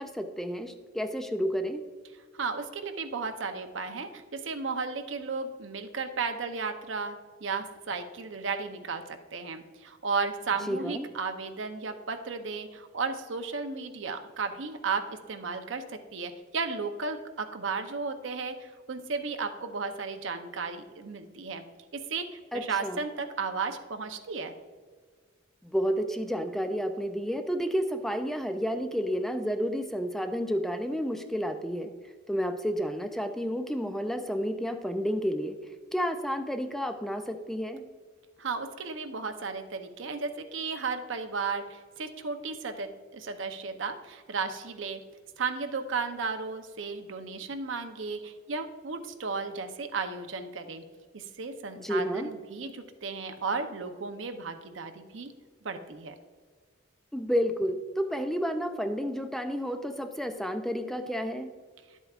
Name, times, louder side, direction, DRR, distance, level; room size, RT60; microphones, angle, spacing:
voice 1, 0.0-1.8 10.7-11.1 22.5-23.0 25.6-31.9 32.3-35.6 35.9-37.8 51.8-52.3 57.1-61.5, equal, ahead, 7 dB, 0.4 m, -31 dB
voice 2, 2.4-7.2 7.4-21.6 21.9-24.6 38.4-45.0 45.4-50.8 51.1-55.3 55.6-56.1, right 4 dB, 75° right, 6 dB, 0.7 m, -34 dB
11.0 x 8.1 x 2.4 m, 1.5 s
head